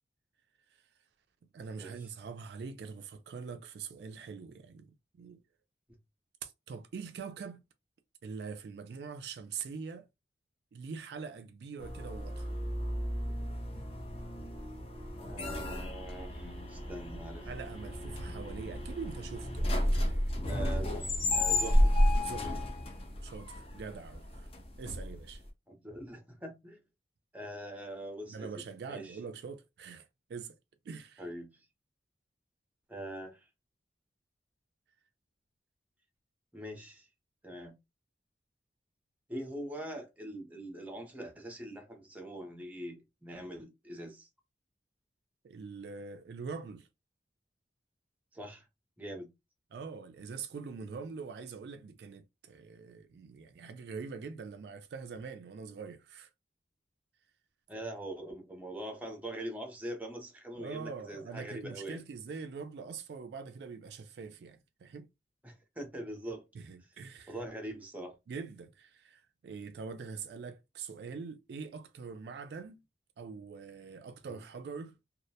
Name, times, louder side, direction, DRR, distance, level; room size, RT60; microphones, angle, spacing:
voice 1, 1.5-5.4 6.4-7.6 8.2-10.1 10.7-12.6 17.5-20.3 22.2-22.6 23.2-24.5 24.8-25.4 28.3-30.6 30.8-31.2 45.4-46.9 49.7-56.3 60.6-65.1 66.5-67.3 68.3-72.8 73.2-75.0, right 5 dB, 65° right, 0.3 m, -44 dB
sound 1, 11.8-25.5, left 1 dB, 35° left, 0.5 m, -32 dB
voice 2, 15.2-17.5 20.5-21.9 25.7-26.8 27.3-29.2 31.2-31.6 32.9-33.5 36.5-37.1 37.4-37.7 39.3-44.3 48.3-48.7 49.0-49.3 57.7-62.0 65.4-66.4 67.3-68.2 74.2-74.4, right 1 dB, 10° right, 0.6 m, -43 dB
2.3 x 2.1 x 2.7 m
head